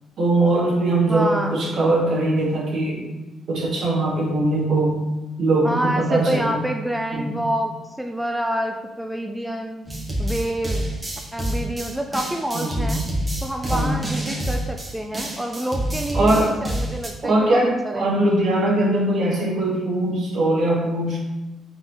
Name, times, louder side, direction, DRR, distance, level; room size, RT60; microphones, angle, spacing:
voice 1, 0.2-3.1 3.5-5.1 5.4-6.6 7.1-7.4 12.5-13.0 13.7-14.1 16.1-16.5 17.2-21.2, right 2 dB, 65° right, -3 dB, 1.4 m, -21 dB
voice 2, 1.1-1.9 5.6-9.9 10.2-10.9 11.3-13.0 13.4-18.3, right 1 dB, 5° right, 3 dB, 0.3 m, -27 dB
sound 1, 9.9-17.1, right 1 dB, 20° right, 1.2 m, -27 dB
3.9 x 3.6 x 3.1 m, 1.1 s
cardioid pair, 90°, 0 cm